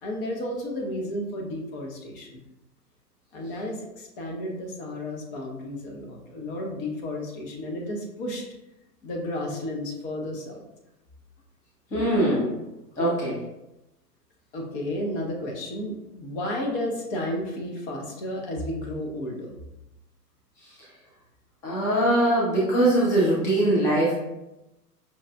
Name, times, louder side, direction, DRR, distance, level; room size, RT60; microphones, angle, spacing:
voice 1, 0.0-2.4 3.3-8.5 9.0-10.6 14.5-19.6, left 1 dB, 35° left, 0 dB, 0.8 m, -32 dB
voice 2, 11.9-12.6 12.9-13.4 20.6-20.7 21.6-24.1, right 1 dB, 5° left, -7 dB, 0.4 m, -22 dB
5.4 x 2.4 x 2.3 m, 0.93 s
figure-of-eight pair, 110°, 48 cm